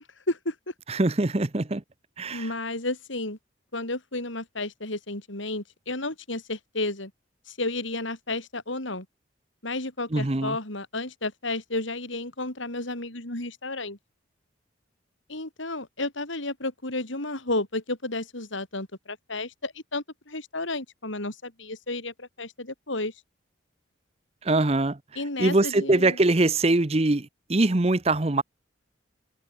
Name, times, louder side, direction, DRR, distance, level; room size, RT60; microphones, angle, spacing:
voice 1, 0.3-0.7 2.3-3.4 3.7-7.1 7.5-9.1 9.6-14.0 15.3-23.1 25.1-26.2, left 2 dB, 75° left, 4.8 m, -32 dB
voice 2, 0.9-1.8 2.2-2.5 10.1-10.6 24.4-25.0 25.4-28.4, right 2 dB, 30° right, 0.8 m, -23 dB
head